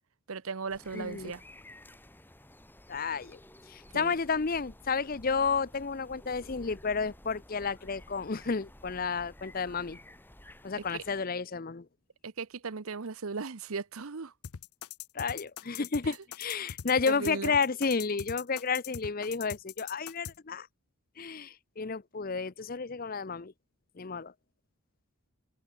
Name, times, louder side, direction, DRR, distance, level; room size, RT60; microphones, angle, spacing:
voice 1, 0.3-1.4 3.9-4.1 10.9-11.0 12.2-14.3 16.0-16.2 17.1-17.5, right 4 dB, 70° right, 0.8 m, -37 dB
sound 1, 0.7-11.2, left 1 dB, 10° left, 2.7 m, -53 dB
voice 2, 0.9-1.3 2.9-3.4 3.7-10.0 10.6-11.9 15.1-20.7 21.2-23.5 24.0-24.3, left 5 dB, 40° left, 0.6 m, -31 dB
sound 2, 14.4-20.3, left 9 dB, 85° left, 0.6 m, -41 dB
open air
head